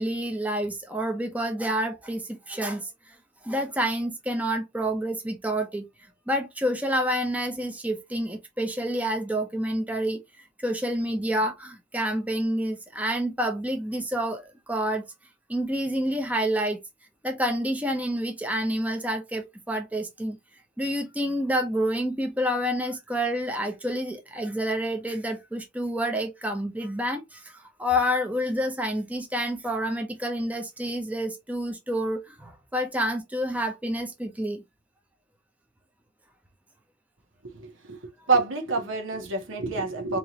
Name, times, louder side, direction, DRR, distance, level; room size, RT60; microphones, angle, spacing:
voice 1, 0.0-3.2 3.4-5.9 6.3-10.2 10.6-15.1 15.5-16.8 17.2-20.4 20.8-34.6, equal, 5° right, 0.7 m, -28 dB
voice 2, 37.4-40.2, right 3 dB, 70° right, 1.2 m, -27 dB
4.4 x 3.0 x 2.9 m
head